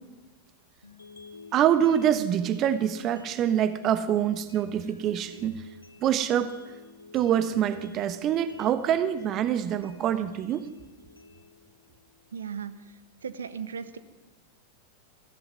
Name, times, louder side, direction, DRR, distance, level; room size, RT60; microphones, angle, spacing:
sound 1, 0.8-12.8, left 4 dB, 80° left, 2.2 m, -51 dB
voice 1, 1.5-5.7 6.0-6.6 7.1-10.7, right 10 dB, 35° right, 13 dB, 1.2 m, -25 dB
voice 2, 12.3-12.7 13.2-14.0, right 7 dB, 70° right, 13 dB, 1.4 m, -36 dB
21.5 x 15.5 x 9.7 m, 1.2 s
figure-of-eight pair, 90°, 0 cm